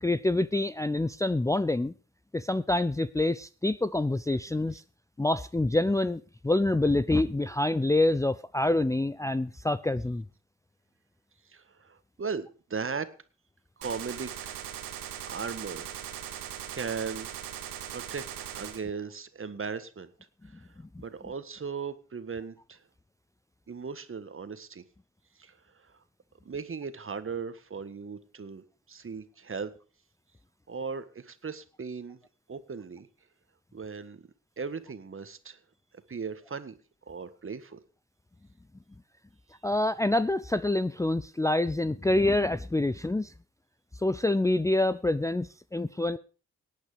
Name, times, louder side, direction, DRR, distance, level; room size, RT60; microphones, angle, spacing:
voice 1, 0.0-1.9 2.3-4.8 5.2-10.2 39.6-43.3 44.0-46.2, left 2 dB, 10° left, 0.6 m, -26 dB
voice 2, 11.4-13.1 13.8-14.7 15.3-16.0 16.7-17.3 17.9-18.3 18.5-20.1 20.4-22.9 23.7-24.8 25.4-26.0 26.4-29.7 30.7-32.2 32.5-33.1 33.7-34.2 34.6-35.6 36.1-36.7 37.1-37.8, right 5 dB, 40° right, 1.7 m, -37 dB
Gunshot gunfire, 13.8-18.8, right 10 dB, 85° right, 1.7 m, -40 dB
18.0 x 8.8 x 5.1 m
hypercardioid pair, 45°, 33 cm